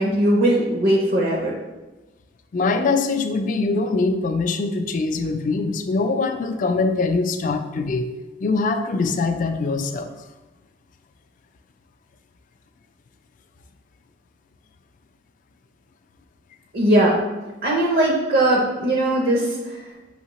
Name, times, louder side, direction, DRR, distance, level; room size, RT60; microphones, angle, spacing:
voice 1, 0.0-1.5 16.7-17.2 17.6-19.8, right 1 dB, 55° right, -1 dB, 0.6 m, -19 dB
voice 2, 2.5-8.1 8.4-10.1, left 3 dB, 45° left, 7 dB, 0.3 m, -23 dB
5.6 x 2.8 x 3.0 m, 1.1 s
head